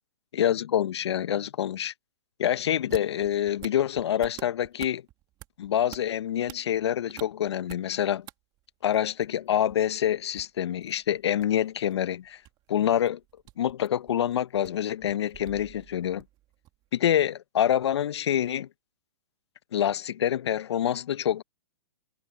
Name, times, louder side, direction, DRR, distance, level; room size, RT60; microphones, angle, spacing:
voice 1, 0.3-1.9 2.4-5.0 5.6-8.3 8.8-12.4 12.7-13.2 13.6-16.2 16.9-18.7 19.7-21.4, left 10 dB, 70° left, 0.8 m, -26 dB
sound 1, 2.8-8.3 8.6-16.9, right 16 dB, 30° right, 2.2 m, -48 dB
hypercardioid pair, 130°, 15 cm